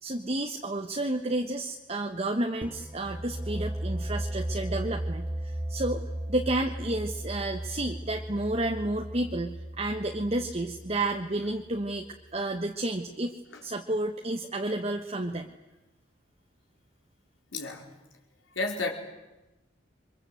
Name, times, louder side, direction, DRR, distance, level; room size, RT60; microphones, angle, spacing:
voice 1, 0.0-6.0 6.3-12.0 12.3-13.3 13.6-15.5, right 2 dB, 35° right, 2 dB, 1.3 m, -31 dB
sound 1, 2.6-12.2, right 1 dB, 10° right, 1.1 m, -36 dB
voice 2, 17.5-17.9 18.5-18.9, left 3 dB, 85° left, 2 dB, 5.0 m, -31 dB
29.0 x 24.0 x 8.0 m, 1.0 s
head